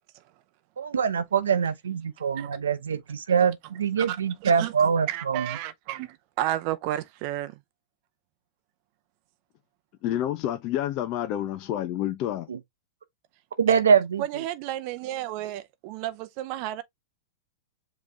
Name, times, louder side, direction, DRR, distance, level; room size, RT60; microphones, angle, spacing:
voice 1, 0.8-5.5 12.5-12.6 13.6-14.2, right 6 dB, 90° right, 0.7 m, -24 dB
voice 2, 4.0-4.7 5.1-7.6 13.7-13.8 14.2-16.8, right 13 dB, 50° right, 0.6 m, -32 dB
voice 3, 10.0-12.5, left 12 dB, 45° left, 0.6 m, -29 dB
5.0 x 3.1 x 3.3 m
hypercardioid pair, 120°, 0 cm